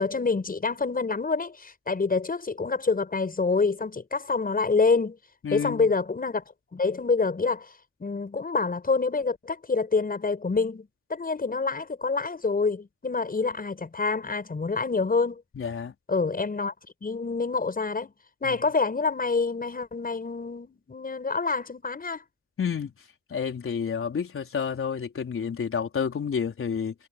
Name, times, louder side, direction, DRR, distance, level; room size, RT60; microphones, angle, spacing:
voice 1, 0.0-5.2 5.5-6.4 6.7-7.7 8.0-15.4 16.1-16.7 17.0-18.1 18.4-22.2, left 4 dB, 30° left, 6.5 m, -27 dB
voice 2, 5.4-5.9 15.6-15.9 18.4-18.5 22.6-22.9 23.3-26.9, left 6 dB, 45° left, 4.3 m, -29 dB
cardioid pair, 90°, 30 cm